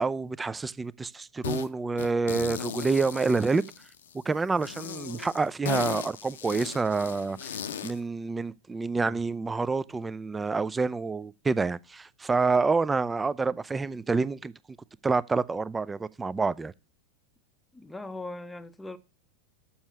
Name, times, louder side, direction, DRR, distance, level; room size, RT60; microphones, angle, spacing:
voice 1, 0.0-3.6 4.3-7.6 7.8-14.5 15.0-16.7, right 4 dB, 10° right, 0.4 m, -28 dB
sound 1, 1.4-1.7 2.0-4.1 4.6-8.0, left 7 dB, 65° left, 0.7 m, -36 dB
voice 2, 8.9-9.2 17.7-19.0, left 2 dB, 5° left, 0.8 m, -40 dB
7.1 x 6.2 x 6.8 m
figure-of-eight pair, 90°, 0 cm